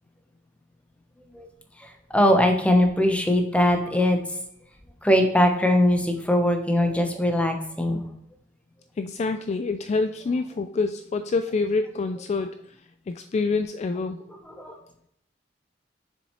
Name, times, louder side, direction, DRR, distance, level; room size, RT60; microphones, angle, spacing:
voice 1, 1.8-4.2 5.0-8.0 14.6-14.8, left 1 dB, 5° left, 4 dB, 0.9 m, -21 dB
voice 2, 9.0-12.6 13.1-14.2, left 3 dB, 35° left, 9 dB, 0.3 m, -26 dB
7.0 x 6.7 x 3.1 m, 0.72 s
head